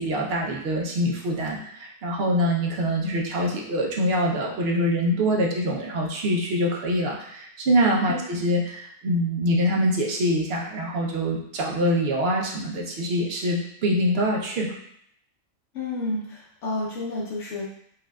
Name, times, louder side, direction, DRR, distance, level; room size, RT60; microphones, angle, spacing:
voice 1, 0.0-14.7, equal, 60° right, -1 dB, 0.8 m, -24 dB
voice 2, 15.7-17.7, left 2 dB, 70° left, -5 dB, 1.0 m, -30 dB
4.6 x 2.4 x 2.2 m, 0.70 s
omnidirectional pair, 1.3 m